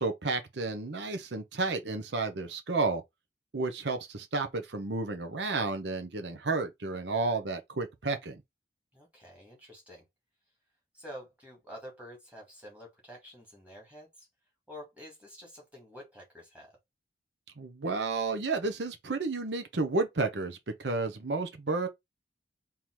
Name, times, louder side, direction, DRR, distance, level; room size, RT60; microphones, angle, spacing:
voice 1, 0.0-3.0 3.5-8.4 17.6-21.9, right 3 dB, 65° right, 0.8 m, -31 dB
voice 2, 8.9-10.0 10.9-14.3 14.7-16.8, equal, 5° right, 2.1 m, -48 dB
3.7 x 2.9 x 4.6 m
head